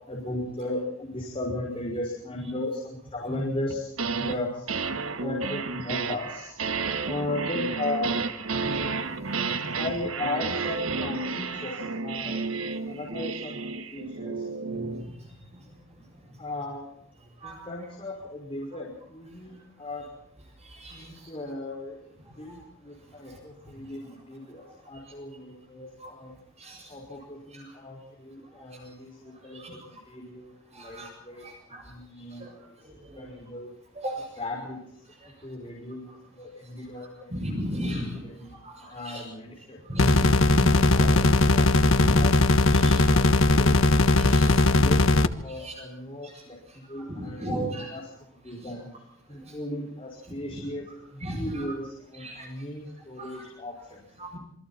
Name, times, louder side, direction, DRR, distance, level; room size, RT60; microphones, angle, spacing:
voice 1, 0.1-3.9 4.2-4.7 5.2-6.5 6.9-8.2 9.8-12.4 12.9-14.5 16.4-16.9 17.4-20.1 20.9-22.1 22.4-26.3 26.9-32.8 33.2-33.7 34.4-37.4 37.8-38.5 38.8-40.1 40.7-43.8 44.6-45.1 45.4-49.0 49.3-50.9 51.1-54.1, left 2 dB, 25° left, -3 dB, 5.6 m, -37 dB
sound 1, 3.7-4.4 4.7-15.1, right 4 dB, 80° right, 1.7 m, -31 dB
voice 2, 8.5-8.9 9.4-9.7 14.7-15.1 17.4-17.6 20.6-21.0 22.5-22.6 26.0-26.1 26.6-26.8 27.5-27.7 29.5-29.8 30.7-31.1 31.4-31.8 32.4-32.5 33.0-33.3 34.0-34.2 37.3-38.2 38.6-39.2 39.9-41.1 42.0-42.2 42.7-43.1 43.7-43.9 44.1-44.6 45.5-45.8 46.2-46.3 46.9-48.0 48.6-48.7 49.3-49.4 50.5-50.6 51.2-51.6 52.2-52.5 53.2-53.4 54.2-54.4, equal, 30° right, 1 dB, 7.7 m, -35 dB
sound 2, 40.0-45.3, left 2 dB, 75° left, 1.4 m, -19 dB
27.5 x 24.0 x 4.4 m, 0.71 s
head